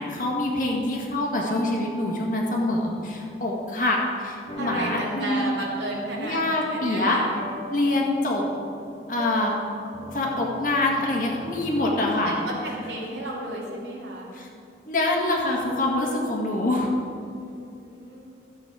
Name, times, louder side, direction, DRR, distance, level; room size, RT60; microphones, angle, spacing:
voice 1, 0.0-5.5 6.2-7.2 7.7-8.5 9.1-9.5 10.1-12.3 14.3-14.5 14.9-16.9, left 2 dB, 50° left, -1 dB, 1.8 m, -25 dB
sound 1, 1.5-3.8 5.2-6.2 7.2-8.5 9.2-11.6, equal, 25° right, 0.9 m, -44 dB
sound 2, 4.5-11.8, left 1 dB, 30° left, 1.4 m, -42 dB
voice 2, 4.6-7.2 8.0-8.5 8.9-9.0 12.2-14.3 17.2-18.3, right 1 dB, 80° right, -3 dB, 2.6 m, -33 dB
13.0 x 7.8 x 4.9 m, 2.6 s
head